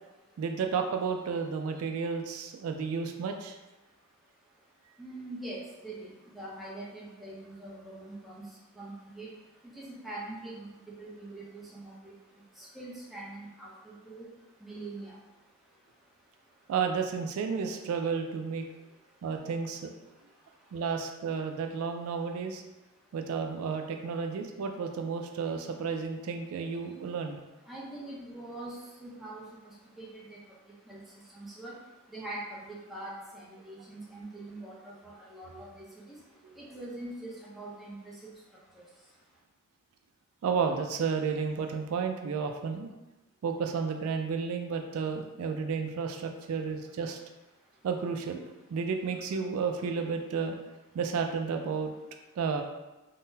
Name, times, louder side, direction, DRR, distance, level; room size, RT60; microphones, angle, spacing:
voice 1, 0.4-3.6 16.7-18.7 19.2-19.9 20.7-22.6 23.1-27.4 36.4-36.5 40.4-42.9 43.4-47.2 47.8-50.6 50.9-51.9 52.4-52.6, right 5 dB, 75° right, 6 dB, 0.3 m, -32 dB
voice 2, 5.0-6.1 6.3-8.4 8.8-9.3 9.8-10.7 11.0-12.1 12.6-14.3 14.6-15.1 27.7-29.4 30.0-30.4 30.9-31.0 31.3-31.7 32.1-35.9 36.6-38.3 38.7-38.8, right 2 dB, ahead, -7 dB, 0.6 m, -43 dB
3.7 x 2.1 x 2.6 m, 1.1 s
head